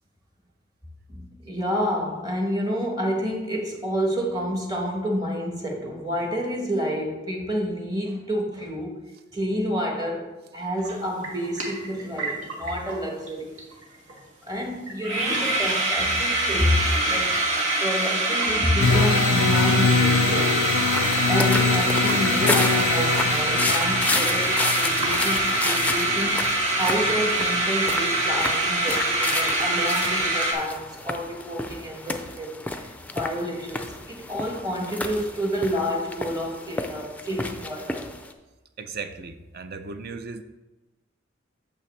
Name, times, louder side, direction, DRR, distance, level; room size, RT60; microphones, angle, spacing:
voice 1, 1.1-9.0 9.3-13.6 14.4-17.4 17.8-20.7 21.3-26.4 26.8-32.5 33.1-38.1, equal, 20° right, 1 dB, 1.3 m, -29 dB
sound 1, 10.8-10.9 11.2-13.0 13.3-13.4 13.5-13.8 14.1-14.2 14.6-14.7 14.9-30.5, right 2 dB, 90° right, 1.7 m, -24 dB
sound 2, 18.8-27.6, left 5 dB, 70° left, 0.3 m, -25 dB
sound 3, 20.9-38.3, left 2 dB, 10° left, 0.4 m, -31 dB
voice 2, 38.8-40.4, right 4 dB, 50° right, 10 dB, 0.6 m, -36 dB
8.5 x 6.8 x 3.3 m, 1.1 s
head